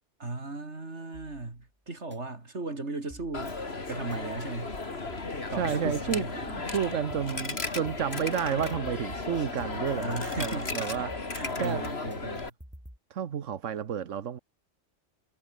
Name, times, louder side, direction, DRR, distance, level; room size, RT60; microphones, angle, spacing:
voice 1, 0.2-3.6 3.9-4.8 5.5-6.3 10.0-11.0 11.3-12.5, right 2 dB, 65° right, 4.0 m, -36 dB
sound 1, 1.9-2.2 3.1-4.2 5.1-6.2 7.1-13.0, equal, 10° right, 6.8 m, -51 dB
Coin (dropping), 3.3-12.5, left 3 dB, 55° left, 3.0 m, -35 dB
voice 2, 5.5-11.1 11.6-11.8 13.1-14.4, right 8 dB, 85° right, 1.4 m, -31 dB
omnidirectional pair, 1.2 m